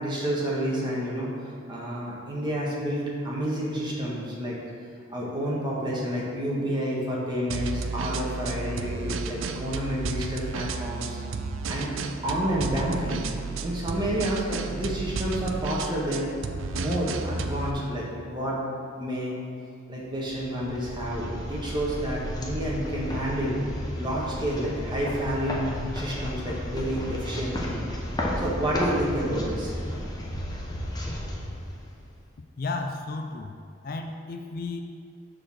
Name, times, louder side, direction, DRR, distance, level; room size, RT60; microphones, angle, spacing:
voice 1, 0.0-4.6 5.1-11.2 11.7-12.0 12.2-13.2 13.6-16.3 16.7-18.6 19.0-19.4 19.9-23.6 24.0-27.8 28.4-29.8, equal, 25° right, -5 dB, 1.4 m, -29 dB
sound 1, 7.5-17.7, right 4 dB, 75° right, 0.4 m, -32 dB
sound 2, 20.2-32.3, left 1 dB, 20° left, 0.9 m, -33 dB
voice 2, 32.6-33.6 33.8-34.8, left 3 dB, 45° left, 5 dB, 0.4 m, -33 dB
6.6 x 4.0 x 6.3 m, 2.4 s
head